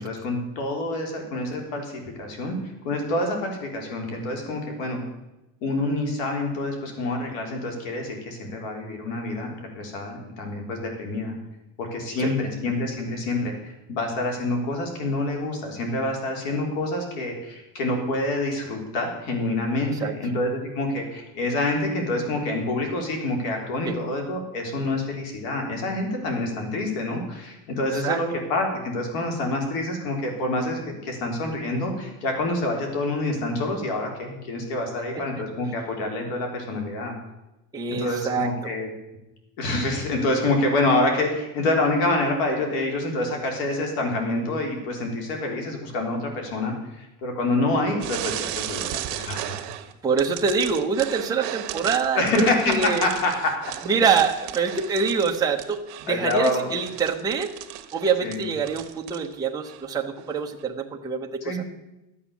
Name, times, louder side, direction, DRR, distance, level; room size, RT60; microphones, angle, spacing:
voice 1, 0.0-2.6 2.8-5.0 5.6-11.4 11.8-37.2 37.9-38.9 39.6-49.6 52.2-53.6 56.1-56.7 58.2-58.4 61.4-61.6, left 2 dB, 85° left, 2 dB, 4.0 m, -27 dB
voice 2, 37.7-38.7 50.0-53.1 53.8-57.5 57.9-61.7, right 5 dB, 10° right, 0 dB, 0.8 m, -25 dB
sound 1, 48.0-49.9 50.2-59.3 59.6-59.8 60.6-60.7, right 13 dB, 60° right, 1.3 m, -35 dB
12.5 x 8.8 x 7.2 m, 0.95 s
cardioid pair, 165°, 46 cm